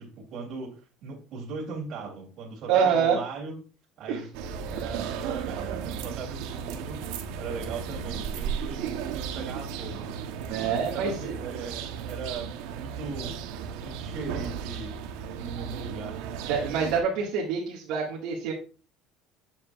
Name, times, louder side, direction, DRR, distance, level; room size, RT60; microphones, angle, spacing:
voice 1, 0.3-3.6 4.0-4.3 4.6-10.1 10.9-13.4 13.7-15.0 15.3-16.2, right 4 dB, 45° right, -6 dB, 2.3 m, -38 dB
voice 2, 2.7-3.2 4.1-4.2 10.5-11.3 16.4-18.5, right 6 dB, 70° right, -6 dB, 1.7 m, -26 dB
sound 1, 4.3-17.0, right 7 dB, 90° right, 0.8 m, -35 dB
7.3 x 7.1 x 2.3 m, 0.36 s
cardioid pair, 180°, 0 cm